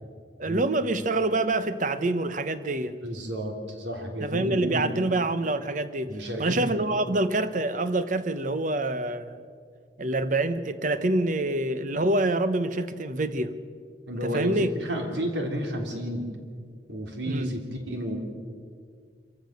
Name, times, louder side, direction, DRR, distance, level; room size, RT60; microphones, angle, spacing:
voice 1, 0.4-3.0 4.2-9.4 10.0-13.6 14.2-14.7 17.3-17.5, right 2 dB, 45° right, 1.0 m, -26 dB
voice 2, 3.0-5.0 6.1-6.8 14.1-16.3 16.9-18.2, equal, 75° right, 3.3 m, -31 dB
26.0 x 15.0 x 6.6 m
head